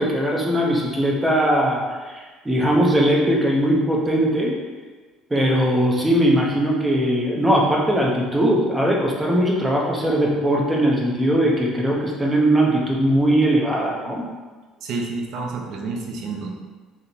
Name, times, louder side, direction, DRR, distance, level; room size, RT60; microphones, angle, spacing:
voice 1, 0.0-4.6 5.3-14.3, right 1 dB, 15° right, -2 dB, 0.8 m, -20 dB
voice 2, 14.8-16.5, right 3 dB, 60° right, 1 dB, 0.5 m, -29 dB
3.6 x 2.1 x 2.8 m, 1.4 s
hypercardioid pair, 60°, 0 cm